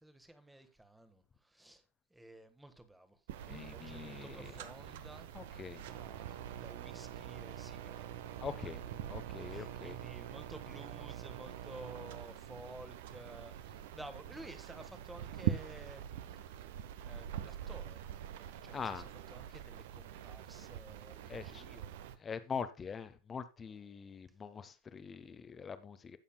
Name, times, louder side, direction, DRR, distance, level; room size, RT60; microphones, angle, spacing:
voice 1, 0.0-1.8 2.1-5.3 5.7-8.2 8.6-8.7 9.5-16.6 17.0-18.0 18.3-22.0, right 1 dB, 5° right, 1.4 m, -53 dB
sound 1, 3.3-22.2, right 11 dB, 50° right, 0.9 m, -44 dB
voice 2, 3.5-4.5 5.3-5.8 8.4-8.8 9.1-10.0 18.7-19.1 21.3-21.6 22.2-26.2, left 6 dB, 20° left, 0.9 m, -43 dB
16.5 x 7.1 x 2.3 m
figure-of-eight pair, 90°, 0 cm